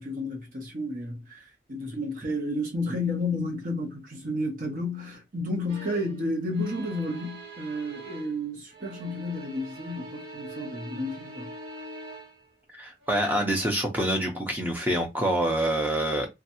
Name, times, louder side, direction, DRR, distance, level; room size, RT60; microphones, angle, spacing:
voice 1, 0.0-11.5, left 1 dB, 50° right, 1.0 m, -32 dB
sound 1, 5.7-6.2 6.5-8.4 8.7-12.5 13.0-13.4, right 2 dB, 65° right, 1.4 m, -43 dB
voice 2, 12.7-16.3, right 1 dB, 10° right, 0.7 m, -26 dB
2.9 x 2.3 x 2.7 m
head